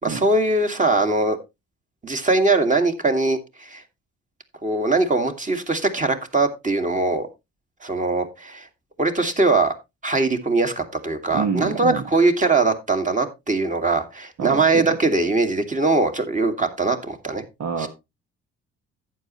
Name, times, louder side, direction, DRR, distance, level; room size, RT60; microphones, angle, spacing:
voice 1, 0.0-1.4 2.0-3.8 4.6-7.3 7.8-8.7 9.0-9.7 10.0-17.4 17.8-17.9, right 3 dB, 25° right, 6 dB, 2.2 m, -21 dB
voice 2, 11.3-12.1 14.4-15.0 17.6-17.9, right 6 dB, 60° right, 4 dB, 1.6 m, -26 dB
11.5 x 8.8 x 3.1 m, 0.24 s
cardioid pair, 90°, 30 cm